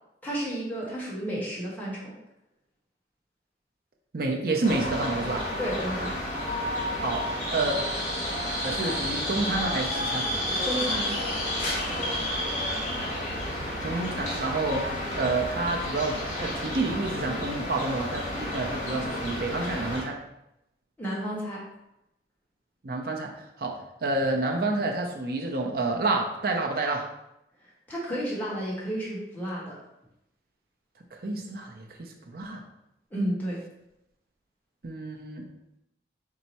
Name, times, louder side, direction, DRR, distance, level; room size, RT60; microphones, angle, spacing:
voice 1, 0.2-2.1 5.6-6.1 10.6-11.4 21.0-21.6 27.9-29.8 33.1-33.6, equal, 10° left, -7 dB, 1.0 m, -32 dB
voice 2, 4.1-5.5 7.0-7.8 8.6-10.3 13.8-20.2 22.8-23.3 23.6-27.1 31.1-32.6 34.8-35.4, right 2 dB, 55° right, 1 dB, 0.5 m, -29 dB
sound 1, 4.6-20.0, left 1 dB, 40° left, 1.0 m, -31 dB
4.5 x 2.1 x 4.1 m, 0.87 s
head